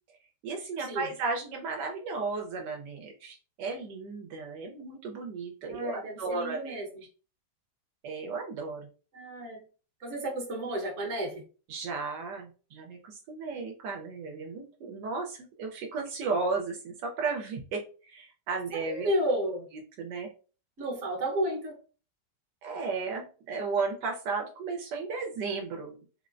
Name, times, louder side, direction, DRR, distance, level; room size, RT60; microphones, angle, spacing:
voice 1, 0.4-6.8 8.0-8.9 11.7-19.1 20.0-20.3 22.6-26.0, right 4 dB, 75° right, 2 dB, 1.2 m, -34 dB
voice 2, 5.7-6.9 9.1-9.6 10.0-11.4 18.7-19.7 20.8-21.8, equal, 50° right, 0 dB, 1.1 m, -32 dB
3.8 x 2.0 x 2.4 m, 0.36 s
omnidirectional pair, 1.9 m